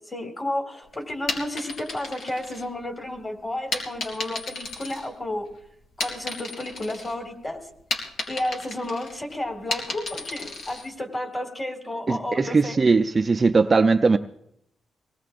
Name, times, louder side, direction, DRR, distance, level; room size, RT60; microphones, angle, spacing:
voice 1, 0.0-5.5 6.0-7.6 8.3-12.8, left 1 dB, 20° left, 3 dB, 2.2 m, -32 dB
sound 1, 1.1-3.1 3.7-5.5 5.8-7.2 7.5-10.9, left 3 dB, 70° left, 3.7 m, -33 dB
voice 2, 12.1-14.2, right 4 dB, 25° right, 6 dB, 0.4 m, -19 dB
23.5 x 18.5 x 2.5 m, 0.75 s
wide cardioid pair, 160°, 0 cm